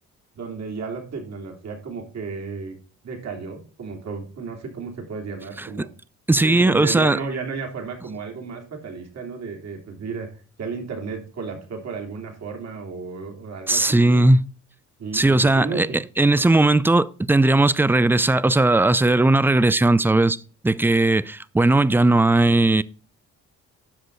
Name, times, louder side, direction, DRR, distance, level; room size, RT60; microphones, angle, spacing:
voice 1, 0.3-2.8 3.0-5.9 6.3-10.3 10.6-14.2 15.0-16.0, right 4 dB, 60° right, 3.0 m, -33 dB
voice 2, 6.3-7.2 13.7-14.4 15.1-20.4 20.6-22.8, right 2 dB, 5° right, 0.4 m, -18 dB
10.0 x 6.2 x 4.0 m
cardioid pair, 90°, 30 cm